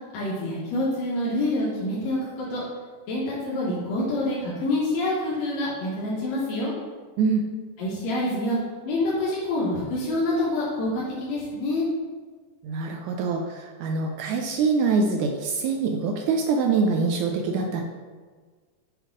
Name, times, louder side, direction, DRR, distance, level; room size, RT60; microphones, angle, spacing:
voice 1, 0.1-2.6 3.1-6.7 7.8-8.6 8.8-11.9, left 1 dB, 65° left, -7 dB, 2.1 m, -27 dB
voice 2, 12.6-17.8, right 4 dB, 80° right, 2 dB, 1.6 m, -24 dB
8.0 x 2.9 x 5.1 m, 1.5 s
omnidirectional pair, 3.7 m